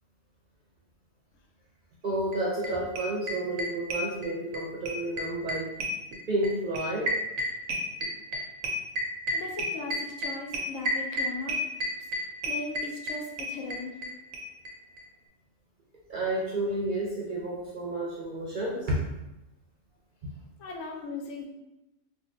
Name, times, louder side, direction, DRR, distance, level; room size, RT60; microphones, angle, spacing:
voice 1, 2.0-5.7 6.3-7.1 16.1-19.0, right 1 dB, 55° right, -5 dB, 0.6 m, -30 dB
sound 1, 2.3-2.4 2.6-2.7 3.0-4.6 4.9-14.1 14.3-14.4 14.7-14.8 15.0-15.1, right 1 dB, 90° right, 1.0 m, -31 dB
voice 2, 9.3-11.6 12.4-14.0 20.6-21.4, left 3 dB, 75° left, 0 dB, 1.0 m, -38 dB
3.5 x 2.3 x 2.6 m, 0.94 s
omnidirectional pair, 1.3 m